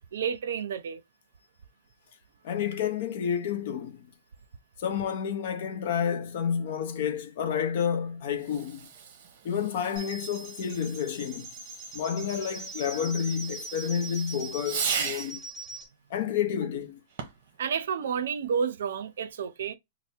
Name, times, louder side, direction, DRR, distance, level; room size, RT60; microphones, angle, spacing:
voice 1, 0.1-1.0 17.6-19.7, right 7 dB, 75° right, 0.5 m, -30 dB
voice 2, 2.4-4.1 4.8-8.9 9.4-11.5 11.9-15.4 16.1-17.0, left 8 dB, 45° left, 0.6 m, -30 dB
Fireworks, 8.3-15.4 17.1-17.6, right 6 dB, 40° right, 0.9 m, -38 dB
sound 1, 10.0-15.9, right 3 dB, 15° right, 1.5 m, -41 dB
3.3 x 2.0 x 4.3 m
supercardioid pair, 180°, 0 cm